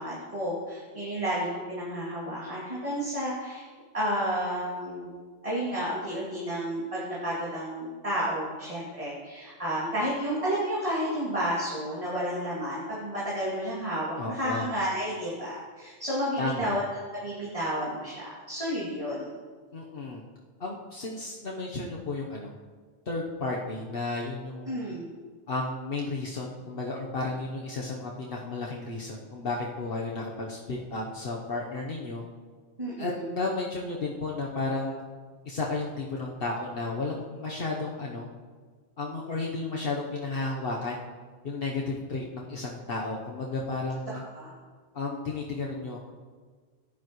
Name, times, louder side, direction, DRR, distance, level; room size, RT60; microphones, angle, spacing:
voice 1, 0.0-3.6 3.9-5.2 5.4-16.8 17.1-19.3 24.7-25.1 32.8-33.3 44.3-44.5, equal, 30° right, -9 dB, 2.6 m, -31 dB
voice 2, 14.2-14.7 16.4-16.8 19.7-20.2 20.6-22.5 23.1-24.7 25.5-32.2 33.0-35.0 35.4-38.3 39.0-41.0 41.4-44.2 44.9-46.0, left 3 dB, 60° left, -2 dB, 1.2 m, -33 dB
15.5 x 11.0 x 3.1 m, 1.5 s
omnidirectional pair, 1.1 m